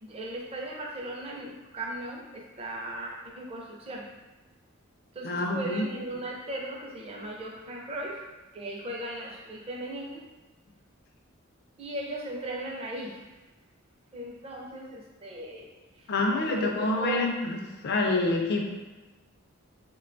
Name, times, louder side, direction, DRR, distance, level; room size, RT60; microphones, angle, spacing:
voice 1, 0.0-4.1 5.1-10.3 11.8-13.2 14.1-15.7 16.0-16.1 16.4-17.3, right 1 dB, 30° right, -1 dB, 0.4 m, -37 dB
voice 2, 5.2-5.8 16.1-17.6 17.8-18.7, left 2 dB, 50° left, 2 dB, 0.4 m, -27 dB
3.6 x 2.2 x 2.5 m, 1.1 s
head